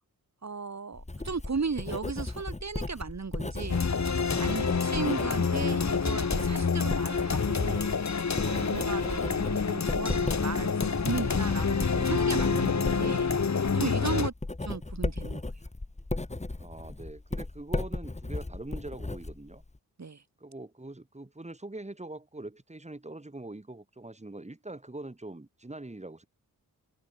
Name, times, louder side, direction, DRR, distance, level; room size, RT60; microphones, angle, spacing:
voice 1, 0.4-3.9 4.4-14.3 14.6-15.4 20.0-20.2, right 4 dB, 45° right, 4.2 m, -36 dB
Writing, 0.9-19.8, left 2 dB, 20° left, 2.2 m, -36 dB
sound 1, 3.7-14.3, left 5 dB, 50° left, 2.1 m, -27 dB
voice 2, 16.6-19.6 20.4-26.3, right 2 dB, 20° right, 6.2 m, -43 dB
wide cardioid pair, 100°, 37 cm